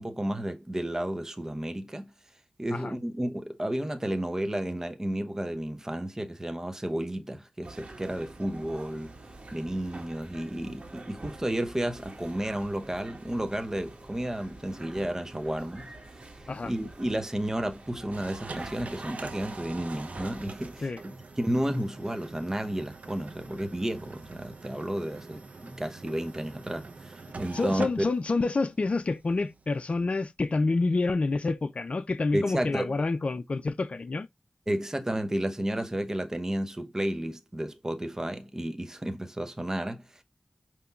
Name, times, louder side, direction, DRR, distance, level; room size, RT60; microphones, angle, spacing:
voice 1, 0.0-2.1 2.6-9.1 9.5-20.9 21.4-28.1 32.3-32.9 34.7-40.2, right 1 dB, 20° right, 0.8 m, -32 dB
sound 1, 7.6-20.8, right 2 dB, 50° right, 1.6 m, -46 dB
sound 2, 18.1-29.8, right 3 dB, 70° right, 0.7 m, -44 dB
voice 2, 27.5-34.3, left 3 dB, 55° left, 0.5 m, -28 dB
5.2 x 2.9 x 2.3 m
cardioid pair, 55°, 2 cm